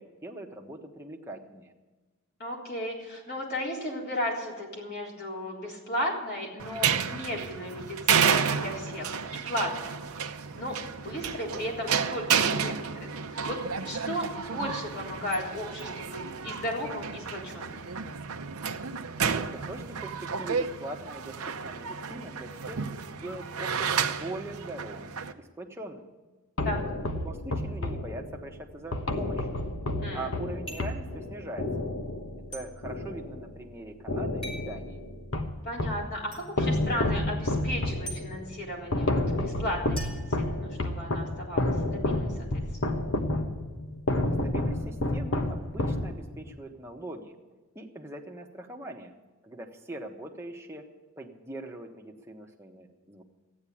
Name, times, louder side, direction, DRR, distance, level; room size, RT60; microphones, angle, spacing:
voice 1, 0.0-1.7 19.2-22.8 23.1-25.1 25.4-26.1 27.2-29.5 30.1-31.7 32.5-35.0 44.4-47.3 47.7-49.1 49.4-50.8 51.2-53.2, right 1 dB, 10° right, 1 dB, 1.2 m, -41 dB
voice 2, 2.4-9.9 10.5-10.8 11.0-12.7 13.0-13.6 13.8-17.9 26.6-26.8 30.0-30.3 35.6-42.9, left 1 dB, 45° left, -3 dB, 3.8 m, -35 dB
sound 1, 6.6-25.3, right 6 dB, 85° right, 0.8 m, -31 dB
sound 2, 26.6-33.7 34.1-36.1 36.6-46.5, left 1 dB, 60° left, 1.2 m, -30 dB
sound 3, 30.7-31.0 32.5-32.7 34.4-34.7 36.3-36.4 38.1-38.2 40.0-41.0, right 1 dB, 25° left, 3.4 m, -42 dB
13.5 x 9.7 x 8.6 m, 1.2 s
head